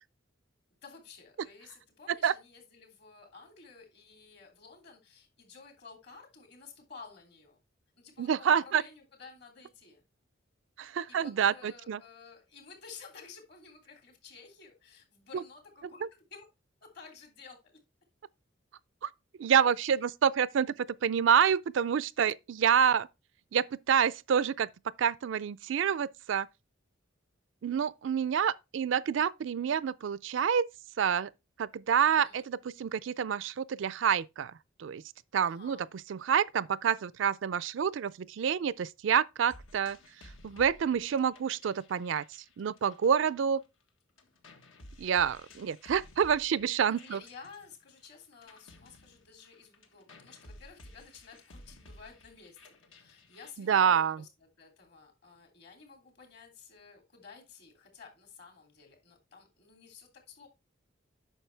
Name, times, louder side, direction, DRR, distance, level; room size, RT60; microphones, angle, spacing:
voice 1, 0.8-7.6 7.9-10.0 10.8-16.5 16.8-17.6 32.0-32.4 35.4-35.9 46.8-60.5, left 5 dB, 60° left, 3.0 m, -53 dB
voice 2, 8.2-8.8 10.8-12.0 19.0-19.1 19.4-20.7 21.0-23.1 23.5-24.7 25.0-26.5 27.6-30.7 31.0-31.3 31.6-34.5 34.8-35.0 35.3-40.0 40.4-42.2 42.6-43.6 45.0-47.2 53.7-54.2, right 7 dB, 70° right, 0.4 m, -27 dB
sound 1, 39.5-43.9 44.2-53.5, left 1 dB, 85° left, 1.6 m, -55 dB
9.1 x 6.1 x 3.3 m
head